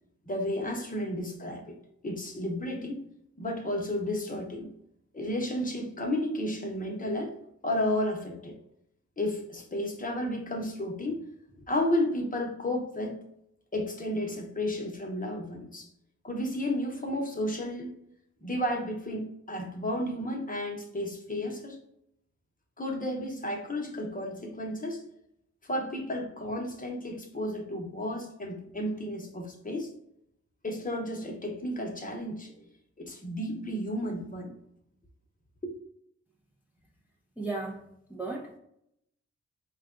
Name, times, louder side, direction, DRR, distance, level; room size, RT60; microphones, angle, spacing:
voice 1, 0.2-1.8 2.0-3.0 3.4-4.7 5.1-7.4 7.6-8.5 9.2-11.2 11.6-13.2 13.7-15.9 16.2-18.0 18.4-21.8 22.8-25.0 25.6-29.9 30.6-32.6 33.0-34.5 35.6-35.7, left 1 dB, 30° left, 1 dB, 0.9 m, -32 dB
voice 2, 37.4-38.6, right 3 dB, 5° right, -2 dB, 0.6 m, -36 dB
4.7 x 2.3 x 3.7 m, 0.75 s
wide cardioid pair, 110°, 29 cm